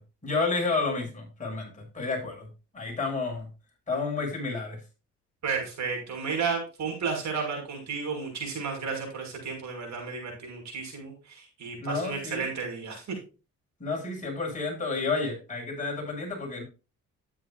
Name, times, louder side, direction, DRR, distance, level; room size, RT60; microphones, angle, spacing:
voice 1, 0.2-2.5 2.7-3.5 3.9-4.8 11.8-12.4 13.8-16.6, left 3 dB, 25° left, 0 dB, 6.7 m, -30 dB
voice 2, 5.4-13.2, right 5 dB, 65° right, 1 dB, 6.2 m, -33 dB
12.5 x 9.8 x 2.6 m, 0.32 s
cardioid pair, 90°, 30 cm